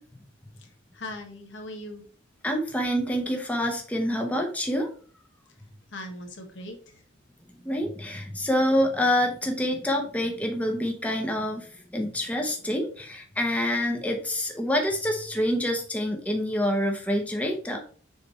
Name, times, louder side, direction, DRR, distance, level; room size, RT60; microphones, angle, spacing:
voice 1, 0.9-2.0 5.9-7.0, left 1 dB, 65° left, 4 dB, 1.4 m, -39 dB
voice 2, 2.4-4.9 7.6-17.8, equal, 5° left, 2 dB, 0.9 m, -27 dB
7.1 x 3.4 x 4.4 m, 0.44 s
head